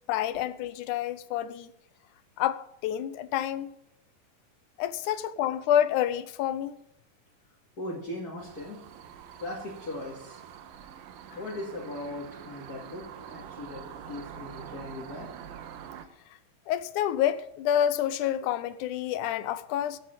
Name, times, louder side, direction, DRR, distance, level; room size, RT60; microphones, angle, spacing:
voice 1, 0.1-1.7 2.4-3.7 4.8-6.8 16.7-20.0, left 10 dB, 75° left, 2.0 m, -28 dB
voice 2, 7.8-8.8 9.4-10.4 11.4-15.3, left 1 dB, 30° left, 2.6 m, -39 dB
sound 1, 8.4-16.1, right 9 dB, 85° right, 2.7 m, -45 dB
14.0 x 8.4 x 7.4 m
omnidirectional pair, 4.0 m